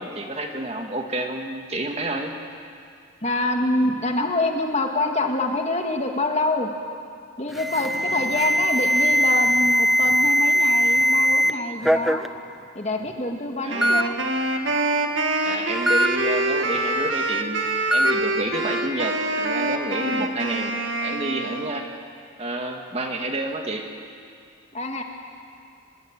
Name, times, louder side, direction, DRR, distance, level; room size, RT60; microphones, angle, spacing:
voice 1, 0.0-2.4 13.6-14.0 15.4-17.6 17.9-20.8 21.0-21.9 22.4-23.9, right 1 dB, 30° right, 3 dB, 1.9 m, -30 dB
voice 2, 3.2-6.7 7.4-12.3 12.7-14.2 20.1-20.3 24.7-25.0, left 2 dB, 30° left, 3 dB, 2.0 m, -26 dB
Alarm, 7.5-11.5 11.8-12.3 13.1-13.2 13.8-14.0 15.9-16.1 17.9-18.1, equal, ahead, 0.6 m, -20 dB
Wind instrument woodwind instrument, 13.7-21.9, right 2 dB, 60° right, 2.1 m, -25 dB
25.5 x 21.0 x 9.0 m, 2.3 s
head